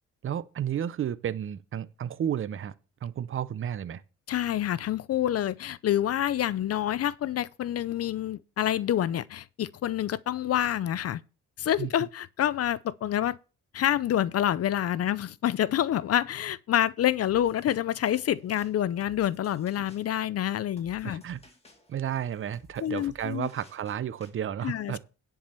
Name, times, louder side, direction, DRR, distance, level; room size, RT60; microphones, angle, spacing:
voice 1, 0.2-2.7 3.0-4.0 11.8-11.9 21.0-21.4 21.9-25.0, right 9 dB, 45° right, 0.7 m, -32 dB
voice 2, 4.3-11.2 11.6-13.4 13.7-21.2 22.8-23.5 24.6-25.0, left 11 dB, 55° left, 0.5 m, -27 dB
sound 1, 17.2-24.3, left 3 dB, 20° left, 2.5 m, -57 dB
10.5 x 4.7 x 6.9 m
cardioid pair, 90°, 30 cm